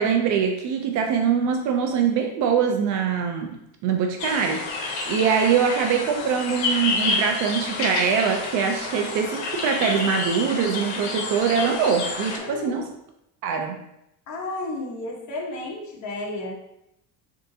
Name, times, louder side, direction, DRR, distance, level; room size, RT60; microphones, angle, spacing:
voice 1, 0.0-3.6 3.8-12.8 13.4-13.8, right 6 dB, 55° right, 4 dB, 0.5 m, -23 dB
sound 1, 4.2-12.4, left 3 dB, 85° left, 1.0 m, -29 dB
voice 2, 12.4-12.9 14.3-16.5, left 2 dB, 50° left, -2 dB, 1.1 m, -32 dB
3.8 x 3.5 x 2.7 m, 0.83 s
cardioid pair, 145°, 36 cm